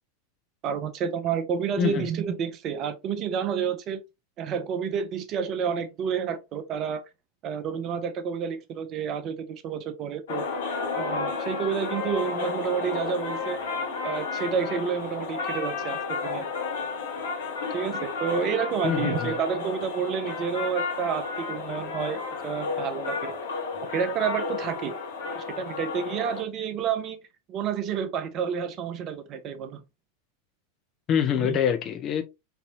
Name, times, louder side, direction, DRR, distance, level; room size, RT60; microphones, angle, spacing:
voice 1, 0.6-4.0 4.4-7.0 7.4-10.5 10.9-13.6 14.0-16.5 17.7-23.4 23.9-24.9 25.3-27.2 27.5-29.8 31.3-31.6, right 7 dB, 35° right, 0.5 m, -30 dB
sound 1, 10.3-26.4, left 4 dB, 65° left, 1.2 m, -32 dB
voice 2, 18.8-19.4 31.1-32.2, left 8 dB, 30° left, 0.6 m, -25 dB
4.1 x 2.7 x 2.4 m
figure-of-eight pair, 90°, 0 cm